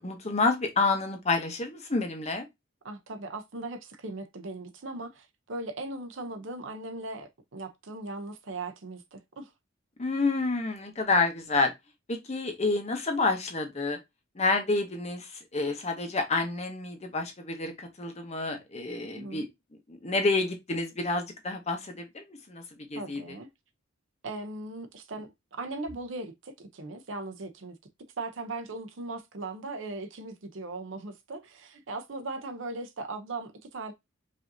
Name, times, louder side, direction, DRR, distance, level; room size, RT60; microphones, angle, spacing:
voice 1, 0.0-2.5 10.0-11.7 12.1-14.0 14.3-19.5 19.9-22.6 22.9-23.4, left 3 dB, 35° left, 0.8 m, -29 dB
voice 2, 2.8-9.5 19.1-19.5 22.9-23.5 24.2-27.8 28.2-33.9, right 2 dB, 70° right, 0.7 m, -38 dB
5.0 x 2.7 x 2.6 m
head